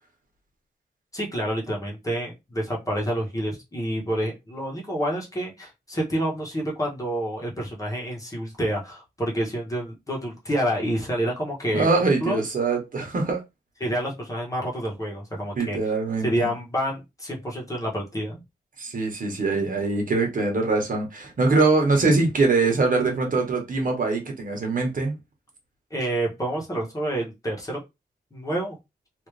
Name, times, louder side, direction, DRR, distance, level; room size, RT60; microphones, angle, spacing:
voice 1, 1.1-12.4 13.8-15.8 16.2-18.4 25.9-27.8 28.3-28.8, right 1 dB, 20° left, 1.1 m, -28 dB
voice 2, 11.7-13.4 15.6-16.5 18.8-25.2, right 3 dB, 55° right, 1.2 m, -23 dB
3.3 x 2.7 x 3.3 m
wide cardioid pair, 150°, 17 cm